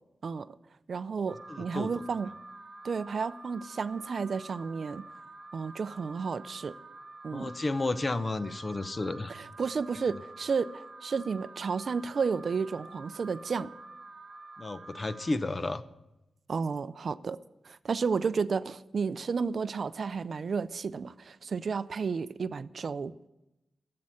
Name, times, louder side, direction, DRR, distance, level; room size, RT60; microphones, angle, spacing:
voice 1, 0.2-0.6 0.9-2.3 2.8-5.0 5.5-6.8 7.2-7.6 9.3-13.7 16.5-17.4 17.6-23.1, right 5 dB, 50° right, 0.4 m, -32 dB
Alarm, 1.3-15.3, right 3 dB, 35° right, 1.2 m, -48 dB
voice 2, 1.5-1.9 7.3-9.3 14.6-15.8, left 2 dB, 30° left, 0.6 m, -32 dB
12.5 x 7.6 x 9.6 m
wide cardioid pair, 155°, 0 cm